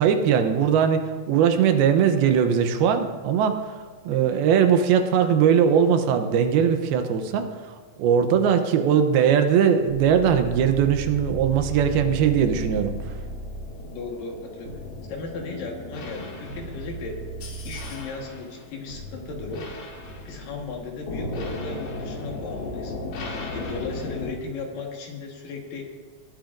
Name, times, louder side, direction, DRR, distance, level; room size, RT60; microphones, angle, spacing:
voice 1, 0.0-13.2, right 8 dB, 85° right, 7 dB, 2.8 m, -20 dB
sound 1, 9.9-13.7 14.6-15.0 16.5-17.9 18.9-19.5, right 2 dB, 35° right, 2.0 m, -35 dB
sound 2, 11.9-24.3, left 2 dB, 90° left, 4.0 m, -37 dB
voice 2, 13.9-14.7 15.1-17.2 17.6-19.7 20.2-22.9 23.5-25.9, left 4 dB, 65° left, 1 dB, 3.1 m, -36 dB
20.0 x 11.5 x 2.6 m, 1.5 s
omnidirectional pair, 4.3 m